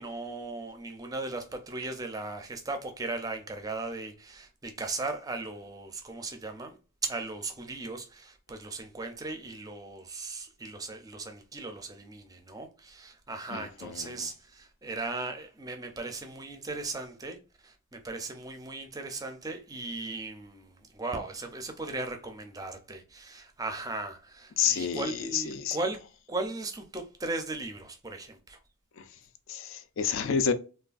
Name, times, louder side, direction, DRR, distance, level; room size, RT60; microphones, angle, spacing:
voice 1, 0.0-26.0 26.3-28.6, right 3 dB, 15° right, 0.4 m, -37 dB
voice 2, 13.5-14.1 24.6-25.8 29.0-29.1 29.5-30.5, left 7 dB, 60° left, 0.4 m, -29 dB
3.2 x 2.2 x 2.4 m
head